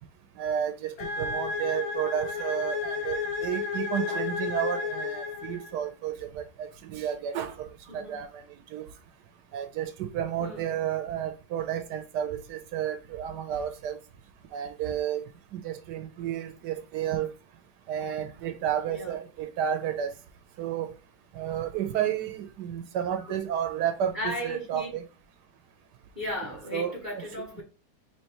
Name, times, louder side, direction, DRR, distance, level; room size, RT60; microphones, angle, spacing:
voice 1, 0.4-7.7 7.9-8.4 8.7-8.9 9.5-14.0 14.5-15.2 15.5-17.3 17.9-20.1 20.6-20.9 21.4-25.1 26.7-27.2, right 9 dB, 80° right, 1.2 m, -31 dB
sound 1, 1.0-5.9, left 5 dB, 60° left, 1.3 m, -32 dB
voice 2, 18.8-19.2 23.2-23.4 24.1-24.9 26.1-27.6, equal, 25° left, 2.2 m, -35 dB
4.5 x 2.9 x 2.9 m
omnidirectional pair, 1.8 m